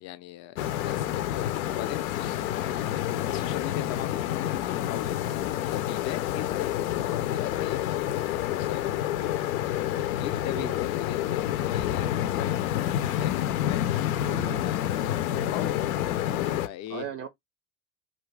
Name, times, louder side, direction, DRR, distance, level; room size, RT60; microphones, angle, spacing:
voice 1, 0.0-2.5 3.2-4.2 4.8-8.1 8.4-8.8 9.7-12.7 13.1-13.9 14.4-16.0 16.6-17.1, left 12 dB, 40° left, 0.5 m, -39 dB
sound 1, 0.6-16.7, left 12 dB, 85° left, 0.6 m, -28 dB
voice 2, 14.1-14.7 16.9-17.3, right 9 dB, 40° right, 0.5 m, -38 dB
2.7 x 2.4 x 3.2 m
supercardioid pair, 125°, 41 cm